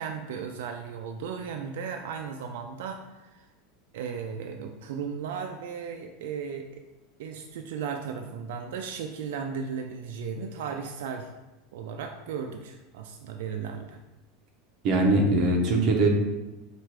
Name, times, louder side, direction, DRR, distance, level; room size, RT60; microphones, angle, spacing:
voice 1, 0.0-3.5 3.9-6.8 7.2-11.3 11.7-14.0, right 6 dB, 75° right, 4 dB, 0.4 m, -36 dB
voice 2, 14.8-16.1, right 2 dB, 35° right, 1 dB, 0.8 m, -21 dB
4.4 x 2.5 x 4.7 m, 1.0 s
supercardioid pair, 170°, 0 cm